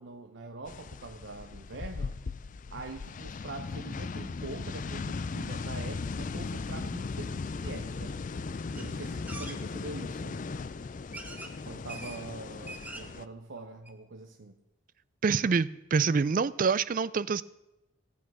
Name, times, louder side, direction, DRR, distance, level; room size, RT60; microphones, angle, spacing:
voice 1, 0.0-2.2 2.7-8.2 8.7-10.4 11.7-14.6, right 3 dB, 60° right, 5 dB, 0.7 m, -44 dB
sound 1, 0.7-13.3, left 4 dB, 40° left, 0.4 m, -37 dB
sound 2, 8.8-8.9 9.3-9.6 10.5-10.6 11.1-11.5 11.9-12.2 12.5-13.2 13.6-13.7 13.9-14.0, right 2 dB, 5° right, 0.9 m, -43 dB
voice 2, 15.2-17.4, right 5 dB, 40° right, 18 dB, 0.3 m, -26 dB
15.5 x 8.2 x 6.1 m, 0.96 s
head